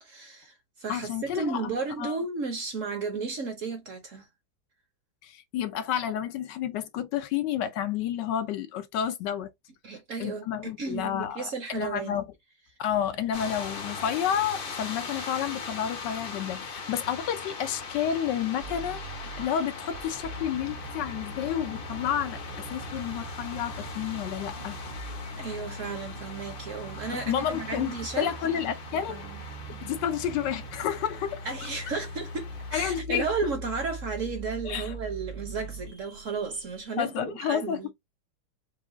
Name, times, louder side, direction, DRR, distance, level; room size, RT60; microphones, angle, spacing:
voice 1, 0.0-4.3 9.8-12.2 25.4-28.3 28.9-29.4 31.4-37.9, right 4 dB, 55° right, 1.0 m, -34 dB
voice 2, 0.9-1.7 2.0-2.2 5.2-9.5 10.2-12.2 12.8-24.8 27.3-27.9 28.2-29.2 29.7-31.5 32.7-33.2 34.6-34.9 37.0-37.8, left 9 dB, 75° left, 1.1 m, -30 dB
sound 1, 13.3-33.0, left 4 dB, 45° left, 0.7 m, -40 dB
sound 2, 18.6-37.1, right 3 dB, 70° right, 1.8 m, -42 dB
4.8 x 2.3 x 3.7 m
omnidirectional pair, 2.1 m